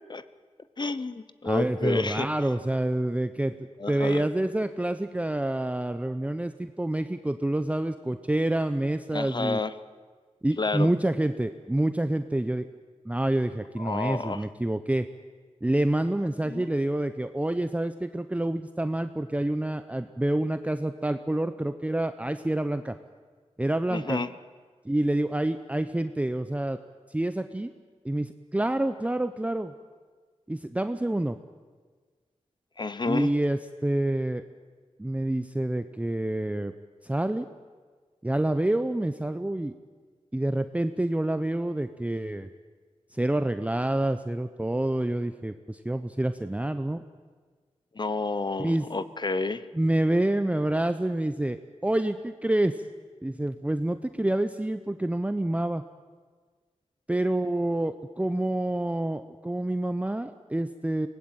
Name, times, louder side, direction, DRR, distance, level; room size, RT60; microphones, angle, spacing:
voice 1, 0.8-2.3 3.8-4.3 9.1-9.7 10.6-10.9 13.8-14.5 16.4-16.7 23.9-24.3 32.8-33.3 47.9-49.6, left 3 dB, 40° left, 14 dB, 0.9 m, -30 dB
voice 2, 1.4-3.5 3.9-9.6 10.4-12.7 13.0-15.1 15.6-22.9 23.6-24.2 24.8-26.8 27.1-27.7 28.0-29.7 30.5-31.4 33.1-34.4 35.0-36.7 37.0-37.5 38.2-39.7 40.3-42.5 43.1-47.0 48.6-48.9 49.7-52.8 53.2-55.8 57.1-61.1, right 1 dB, 10° right, 9 dB, 0.7 m, -27 dB
23.5 x 19.0 x 9.0 m, 1.5 s
wide cardioid pair, 95°, 12 cm